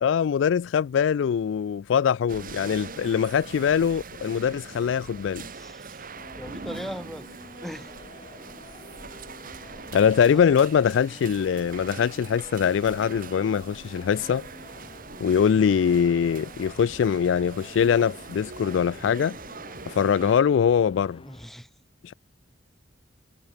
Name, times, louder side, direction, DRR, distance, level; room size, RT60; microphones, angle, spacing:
voice 1, 0.0-5.4 9.9-14.4 15.2-19.4 19.9-21.2 22.0-22.1, left 7 dB, 70° left, 0.3 m, -23 dB
sound 1, 2.3-20.4, right 4 dB, 50° right, 1.9 m, -42 dB
voice 2, 5.4-6.1 6.4-7.3 7.6-7.9 8.4-8.5 9.5-9.8 10.0-10.7 21.3-21.7, equal, ahead, 4.2 m, -40 dB
sound 2, 6.1-21.5, left 1 dB, 30° left, 3.9 m, -48 dB
head